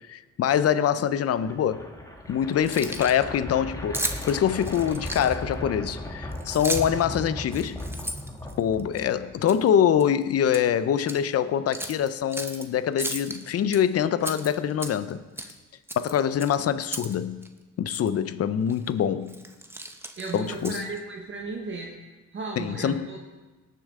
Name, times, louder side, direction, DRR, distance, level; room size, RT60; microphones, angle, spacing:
voice 1, 0.0-1.9 2.3-7.8 8.6-15.2 16.0-17.4 17.8-19.4 20.3-20.9 22.6-23.1, left 9 dB, 55° left, 0.6 m, -24 dB
sound 1, 1.4-9.4, left 1 dB, 10° left, 1.5 m, -37 dB
Keys jangling, 2.5-3.2 3.9-5.5 6.3-7.0 7.5-9.0 9.5-9.7 10.0-10.7 11.0-11.2 11.7-12.6 13.0-13.8 14.2-15.1 15.4-15.6 15.9-17.2 17.4-17.5 17.9-18.1 18.7-18.9 19.3-21.0, right 1 dB, 10° right, 0.9 m, -35 dB
voice 2, 20.2-21.9 22.3-23.2, right 3 dB, 40° right, 1.4 m, -35 dB
18.0 x 6.8 x 3.7 m
cardioid pair, 90°, 30 cm